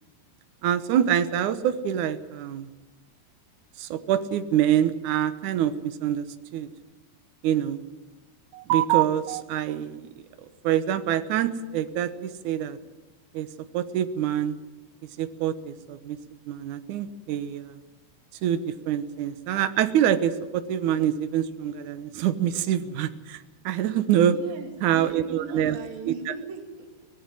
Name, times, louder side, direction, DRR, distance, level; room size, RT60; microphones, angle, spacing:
voice 1, 0.6-2.7 3.8-6.3 6.5-6.7 7.4-7.8 8.5-10.1 10.4-12.8 13.3-13.5 13.7-14.6 15.2-16.2 16.5-17.8 18.4-24.3 24.8-25.8 26.1-26.3, right 10 dB, 70° right, 11 dB, 1.9 m, -25 dB
voice 2, 24.3-27.1, right 5 dB, 55° right, 2 dB, 4.7 m, -39 dB
23.5 x 19.0 x 7.8 m, 1.2 s
omnidirectional pair, 5.1 m